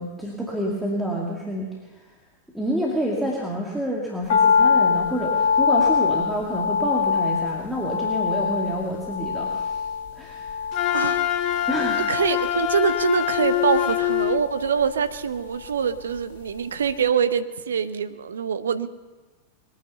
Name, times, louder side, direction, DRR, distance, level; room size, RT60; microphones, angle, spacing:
voice 1, 0.0-1.7 2.5-9.8 10.2-10.5 11.7-12.0, right 1 dB, 5° right, -3 dB, 2.3 m, -28 dB
sound 1, 4.3-16.6 16.8-16.9, left 6 dB, 55° left, 1.6 m, -25 dB
Wind instrument woodwind instrument, 10.7-14.4, left 12 dB, 40° left, 0.8 m, -24 dB
voice 2, 10.9-11.6 12.0-18.9, right 7 dB, 65° right, 12 dB, 0.7 m, -24 dB
21.5 x 9.3 x 6.9 m, 1.3 s
figure-of-eight pair, 90°, 0 cm